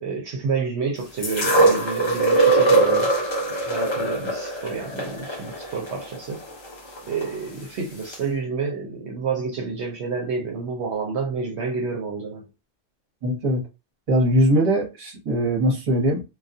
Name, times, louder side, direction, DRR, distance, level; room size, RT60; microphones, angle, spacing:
voice 1, 0.0-3.1 3.7-6.4 7.1-12.4, right 4 dB, 65° right, 0.8 m, -29 dB
sound 1, 1.2-7.3 8.1-8.2, right 2 dB, 35° left, 0.4 m, -21 dB
voice 2, 13.2-13.7 14.1-16.2, equal, 35° right, 0.9 m, -21 dB
2.2 x 2.2 x 2.5 m
omnidirectional pair, 1.3 m